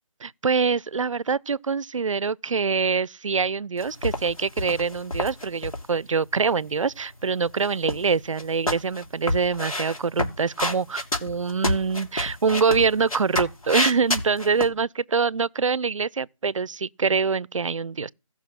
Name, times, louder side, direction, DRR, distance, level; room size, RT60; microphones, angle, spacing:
voice 1, 0.2-18.1, right 5 dB, 65° right, 0.5 m, -25 dB
sound 1, 3.8-5.8 7.5-8.1 8.4-14.7, left 1 dB, 85° left, 2.7 m, -28 dB
15.0 x 6.0 x 5.8 m
figure-of-eight pair, 165°, 18 cm